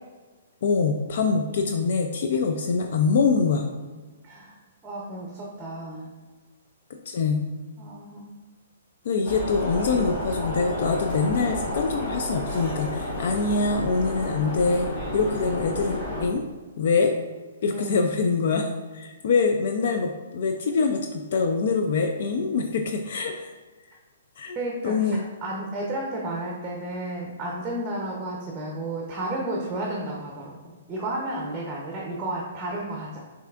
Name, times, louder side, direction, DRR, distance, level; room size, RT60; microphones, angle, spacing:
voice 1, 0.6-3.7 7.1-7.4 9.0-16.4 16.8-17.1 17.6-23.5 24.4-24.6 24.8-25.2, left 4 dB, 60° left, 4 dB, 0.3 m, -24 dB
voice 2, 4.2-4.5 4.8-6.1 7.8-8.3 17.7-18.0 24.6-25.1 25.4-33.2, right 1 dB, 15° right, -2 dB, 0.6 m, -32 dB
sound 1, 9.3-16.3, left 1 dB, 40° left, 1.3 m, -31 dB
5.6 x 2.7 x 2.4 m, 1.3 s
hypercardioid pair, 145°, 0 cm